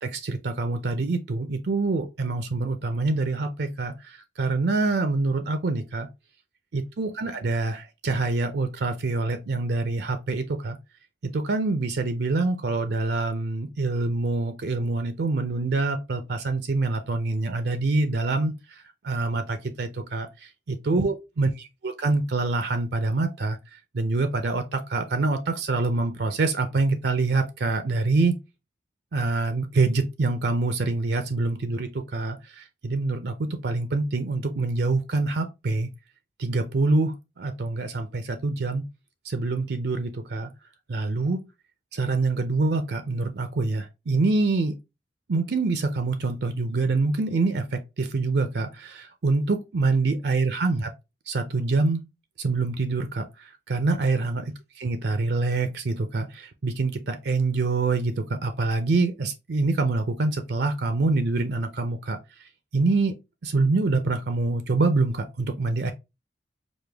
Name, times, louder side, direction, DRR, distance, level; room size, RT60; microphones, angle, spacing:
voice 1, 0.0-6.1 6.7-10.8 11.2-28.4 29.1-35.9 36.4-38.8 39.2-40.5 40.9-41.4 41.9-44.8 45.3-50.9 51.3-52.1 52.4-62.2 62.7-63.1 63.4-65.9, right 3 dB, 65° right, 0.5 m, -26 dB
4.9 x 2.2 x 3.4 m
head